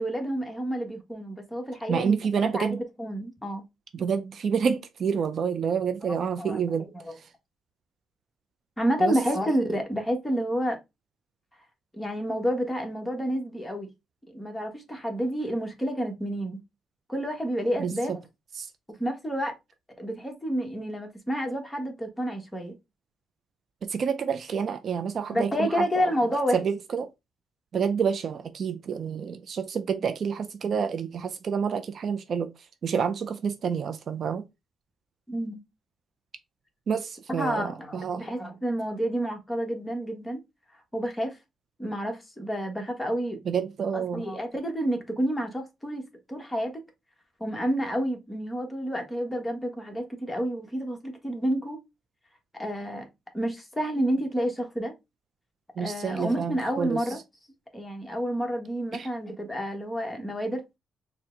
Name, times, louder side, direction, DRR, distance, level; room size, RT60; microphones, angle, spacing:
voice 1, 0.0-3.6 6.1-6.6 6.9-7.1 8.8-10.8 11.9-13.9 14.3-16.6 17.1-18.2 19.0-19.5 20.0-22.8 25.3-26.6 35.3-35.6 37.3-40.4 40.9-41.4 41.8-43.4 43.9-46.8 47.4-51.8 52.5-53.1 53.3-54.9 55.8-57.2 57.7-60.6, equal, 10° left, 1.3 m, -29 dB
voice 2, 1.9-2.8 3.9-6.9 9.0-9.2 17.8-18.2 18.6-18.7 23.8-26.1 26.5-27.1 27.7-32.5 32.8-34.5 36.9-38.2 43.5-44.2 55.8-57.0 58.9-59.1, right 6 dB, 55° right, 0.4 m, -28 dB
4.3 x 2.2 x 3.7 m
cardioid pair, 90°, 0 cm